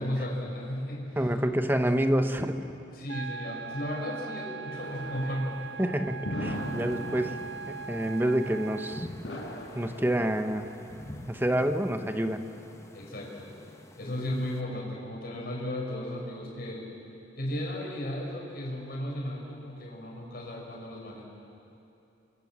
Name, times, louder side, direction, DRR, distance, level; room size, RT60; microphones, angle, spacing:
voice 1, 0.0-1.2 2.9-5.5 12.9-13.5 14.0-16.9 17.4-21.2, left 1 dB, 55° left, -1 dB, 5.8 m, -35 dB
voice 2, 1.2-2.6 5.8-7.4 7.7-9.1 9.7-10.7 11.3-12.4, right 1 dB, 10° right, 7 dB, 1.1 m, -27 dB
sound 1, 3.1-9.1, right 5 dB, 70° right, 0.6 m, -40 dB
sound 2, 4.7-11.8, equal, 85° left, 4.8 m, -40 dB
sound 3, 6.5-14.6, left 1 dB, 15° left, 1.2 m, -48 dB
27.5 x 24.0 x 7.4 m, 2.8 s
head